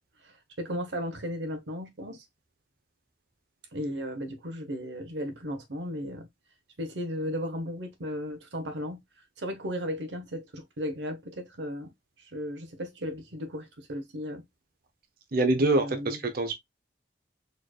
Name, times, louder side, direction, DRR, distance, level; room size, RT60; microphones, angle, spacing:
voice 1, 0.2-2.2 3.7-6.3 6.8-9.0 9.4-11.9 12.3-14.4 15.6-16.2, equal, 75° right, 1.0 m, -35 dB
voice 2, 15.3-16.5, right 2 dB, 55° right, 0.7 m, -25 dB
4.3 x 3.2 x 2.3 m
head